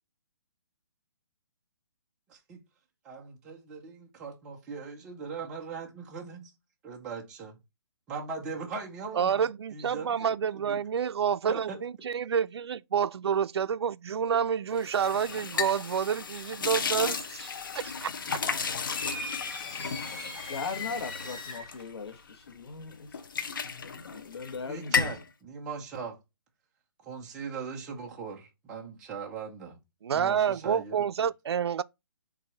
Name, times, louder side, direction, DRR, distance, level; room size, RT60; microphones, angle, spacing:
voice 1, 2.3-2.6 3.0-6.5 6.8-7.6 8.1-9.4 9.7-10.8 11.5-11.8 24.7-26.2 27.0-29.8 30.1-31.0, right 5 dB, 5° right, 0.5 m, -40 dB
voice 2, 9.1-17.5 18.0-18.1 30.0-31.8, right 7 dB, 80° right, 0.4 m, -28 dB
sound 1, 14.8-22.5 22.9-24.6 24.8-25.2, left 6 dB, 55° left, 1.0 m, -34 dB
sound 2, 19.0-21.8, left 3 dB, 20° left, 1.3 m, -40 dB
voice 3, 20.5-23.1 23.8-25.1, left 4 dB, 75° left, 1.3 m, -39 dB
4.8 x 3.9 x 5.6 m
hypercardioid pair, 180°, 13 cm